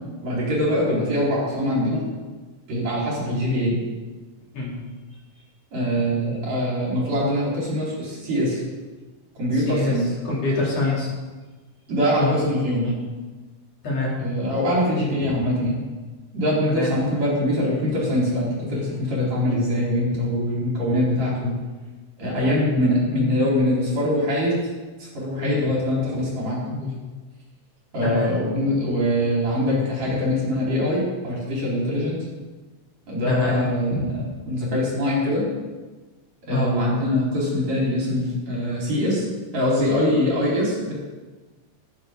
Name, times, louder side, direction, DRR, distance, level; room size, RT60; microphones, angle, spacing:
voice 1, 0.2-2.1 2.7-3.8 5.7-8.6 9.4-10.1 11.9-13.0 14.2-15.8 16.3-21.5 22.2-24.6 25.0-26.9 27.9-32.2 33.1-34.1 34.5-35.5 36.5-39.3 39.5-40.9, left 1 dB, 60° right, -6 dB, 5.5 m, -23 dB
voice 2, 9.5-9.9 10.2-11.1 12.2-12.4 13.8-14.1 15.2-15.4 16.7-16.9 22.4-22.6 25.4-25.6 28.0-28.3 33.2-34.1 36.5-36.8, left 2 dB, 55° left, -5 dB, 4.0 m, -25 dB
15.0 x 12.0 x 3.8 m, 1.3 s
omnidirectional pair, 3.6 m